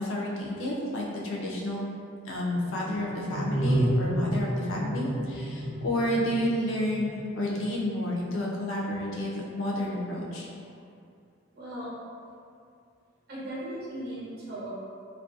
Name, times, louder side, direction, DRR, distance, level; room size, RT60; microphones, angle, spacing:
voice 1, 0.0-1.8 2.2-10.5, left 1 dB, 75° left, -3 dB, 0.5 m, -30 dB
sound 1, 2.5-7.8, right 1 dB, ahead, 0.8 m, -30 dB
voice 2, 11.5-11.9 13.3-14.7, right 1 dB, 50° right, -9 dB, 0.7 m, -37 dB
2.3 x 2.2 x 2.5 m, 2.4 s
head